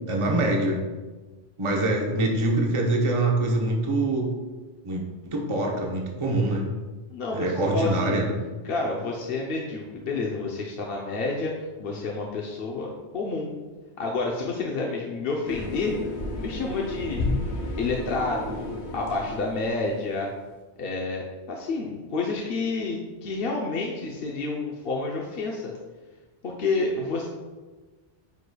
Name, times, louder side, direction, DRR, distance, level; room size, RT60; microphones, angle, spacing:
voice 1, 0.1-0.8 1.6-4.3 4.8-6.6 7.3-8.3, right 2 dB, 30° right, 0 dB, 0.9 m, -24 dB
voice 2, 7.1-8.2 8.6-11.5 11.8-13.5 14.0-16.0 16.4-17.2 17.8-20.3 20.8-25.7 26.4-27.3, left 3 dB, 60° left, -2 dB, 0.9 m, -29 dB
sound 1, 15.5-20.1, left 2 dB, 85° left, 1.2 m, -32 dB
9.4 x 4.8 x 2.3 m, 1.3 s
omnidirectional pair, 1.1 m